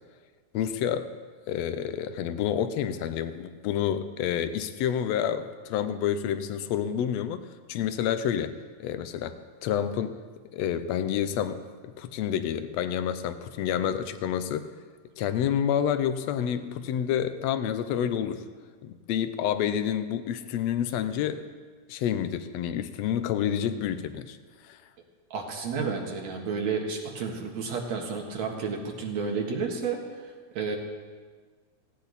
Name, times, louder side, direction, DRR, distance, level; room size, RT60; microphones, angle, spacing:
voice 1, 0.5-1.1 1.5-10.2 10.5-14.7 15.2-18.4 18.8-21.5 21.9-24.4 24.6-24.8, left 9 dB, 70° left, 11 dB, 1.8 m, -29 dB
voice 2, 25.3-30.0 30.5-30.8, right 5 dB, 65° right, 1 dB, 2.9 m, -31 dB
17.0 x 17.0 x 4.1 m, 1.5 s
omnidirectional pair, 3.3 m